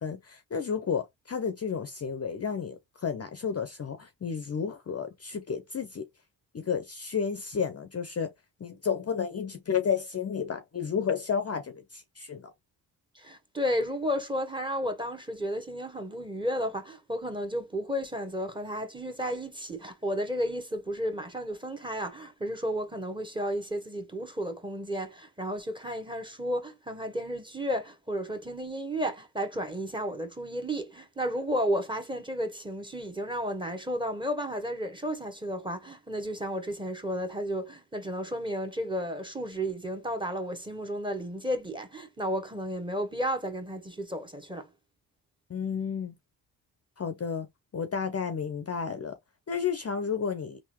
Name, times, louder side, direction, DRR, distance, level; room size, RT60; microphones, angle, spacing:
voice 1, 0.0-6.0 6.5-8.3 8.6-12.5 45.5-46.1 47.0-47.5 47.7-49.2 49.5-50.6, left 6 dB, 35° left, 0.6 m, -32 dB
voice 2, 13.1-44.7, equal, 10° right, 1.1 m, -33 dB
3.6 x 2.6 x 2.9 m
supercardioid pair, 60°, 46 cm